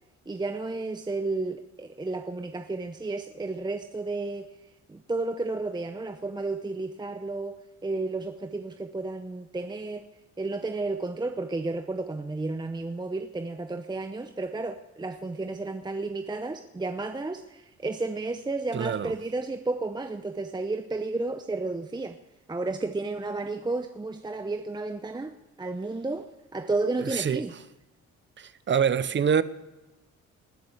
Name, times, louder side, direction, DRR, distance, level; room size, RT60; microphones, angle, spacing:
voice 1, 0.3-4.5 4.9-10.1 10.4-22.2 22.5-25.3 25.6-27.5, right 3 dB, 15° right, 0.8 m, -32 dB
voice 2, 18.7-19.1 27.0-27.4 28.4-29.4, right 7 dB, 40° right, 0.8 m, -25 dB
20.0 x 7.0 x 7.9 m
cardioid pair, 90°, 30 cm